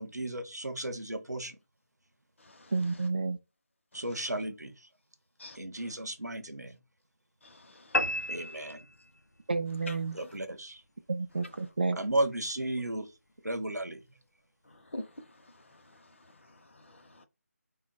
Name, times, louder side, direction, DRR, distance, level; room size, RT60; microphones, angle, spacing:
voice 1, 0.0-1.6 3.9-4.7 5.6-6.7 8.3-8.8 10.1-10.8 12.0-13.1 13.4-14.0, right 1 dB, 85° right, 0.8 m, -34 dB
voice 2, 2.7-3.4 9.5-10.2 11.1-12.0, right 4 dB, 35° right, 0.4 m, -30 dB
voice 3, 7.4-8.2 9.9-10.0 14.9-15.1 16.8-17.3, left 2 dB, 50° left, 0.7 m, -44 dB
sound 1, 7.9-9.5, left 1 dB, 90° left, 0.4 m, -32 dB
3.7 x 2.2 x 3.9 m
figure-of-eight pair, 160°, 9 cm